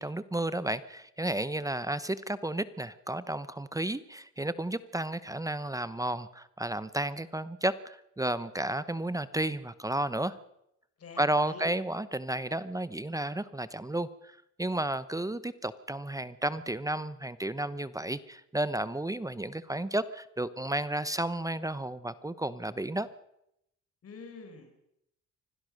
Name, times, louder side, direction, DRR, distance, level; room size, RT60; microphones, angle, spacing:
voice 1, 0.0-10.4 11.2-23.1, right 1 dB, 10° right, 15 dB, 1.0 m, -32 dB
voice 2, 11.0-11.7 24.0-24.7, left 4 dB, 50° left, 3 dB, 5.3 m, -46 dB
25.0 x 17.0 x 6.6 m, 0.80 s
cardioid pair, 90°, 30 cm